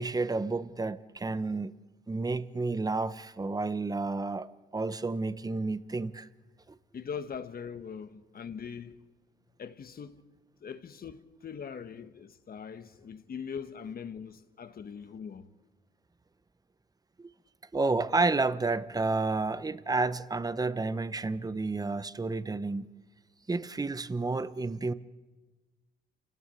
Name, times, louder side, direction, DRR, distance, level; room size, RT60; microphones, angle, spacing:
voice 1, 0.0-1.7 2.1-6.3 17.2-17.3 17.7-22.9 23.5-24.9, right 3 dB, 20° right, 1.0 m, -30 dB
voice 2, 6.9-9.1 9.6-10.3 10.6-15.5, left 6 dB, 50° left, 1.5 m, -41 dB
28.0 x 18.0 x 8.5 m
cardioid pair, 90°, 20 cm